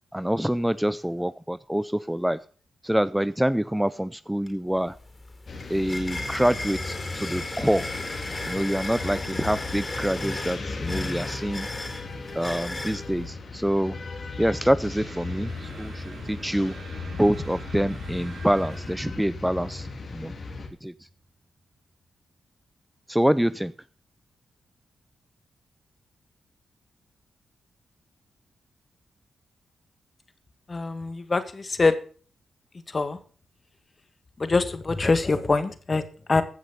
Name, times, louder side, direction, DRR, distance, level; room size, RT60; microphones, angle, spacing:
voice 1, 0.1-2.4 2.8-5.0 5.7-7.9 8.5-11.7 12.3-14.0 14.4-16.7 17.2-20.3 20.8-20.9 23.1-23.7, equal, 5° right, 16 dB, 0.5 m, -26 dB
sound 1, 4.5-4.6 4.9-13.0, left 1 dB, 20° left, 4.2 m, -36 dB
sound 2, 5.5-20.7, left 3 dB, 55° left, 3.1 m, -36 dB
sound 3, 14.9-21.3, right 3 dB, 60° right, 5.1 m, -46 dB
voice 2, 30.7-32.0 32.9-33.2 34.4-36.4, left 3 dB, 40° left, 12 dB, 1.7 m, -24 dB
15.5 x 6.2 x 6.8 m, 0.42 s
cardioid pair, 55°, 0 cm